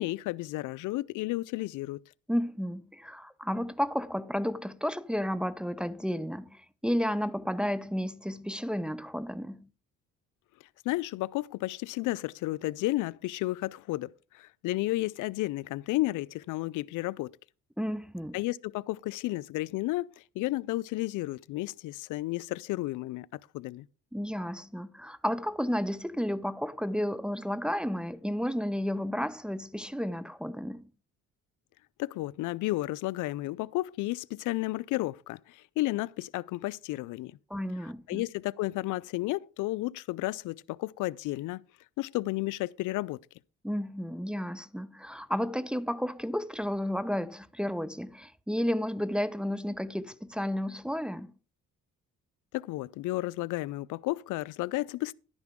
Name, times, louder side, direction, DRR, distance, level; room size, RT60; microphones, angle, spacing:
voice 1, 0.0-2.0 10.9-14.1 14.3-17.3 18.3-23.3 23.5-23.9 32.0-37.4 38.1-41.6 42.0-43.2 52.5-55.1, left 18 dB, 85° left, 0.5 m, -32 dB
voice 2, 2.3-9.7 17.8-18.4 24.1-30.9 37.5-38.2 43.6-51.3, equal, 5° right, 0.6 m, -32 dB
11.5 x 9.7 x 3.6 m
cardioid pair, 90°, 30 cm